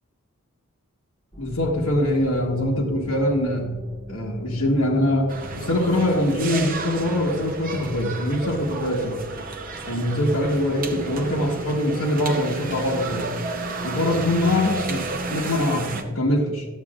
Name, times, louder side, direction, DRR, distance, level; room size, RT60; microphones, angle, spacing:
sound 1, 1.3-11.5, left 1 dB, 15° left, 2.5 m, -42 dB
voice 1, 1.4-3.7 4.1-9.2 9.9-13.3 13.8-16.7, left 1 dB, 75° left, -5 dB, 1.3 m, -23 dB
sound 2, 5.3-16.0, right 3 dB, 40° right, 0.8 m, -32 dB
12.5 x 7.5 x 2.4 m, 1.3 s
head